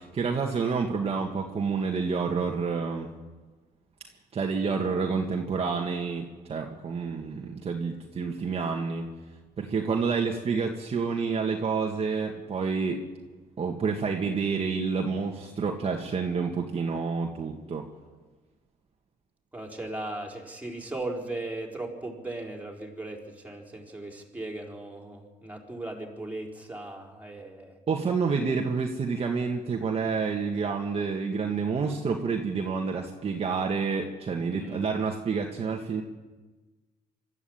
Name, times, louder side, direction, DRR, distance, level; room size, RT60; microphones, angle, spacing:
voice 1, 0.0-3.1 4.3-9.1 9.6-13.0 13.6-17.9 27.9-36.0, right 5 dB, 35° right, 1 dB, 1.9 m, -29 dB
voice 2, 4.6-5.1 19.5-27.8 34.4-34.9, right 2 dB, 10° right, 1 dB, 4.2 m, -38 dB
25.0 x 13.0 x 8.8 m, 1.3 s
cardioid pair, 110°, 17 cm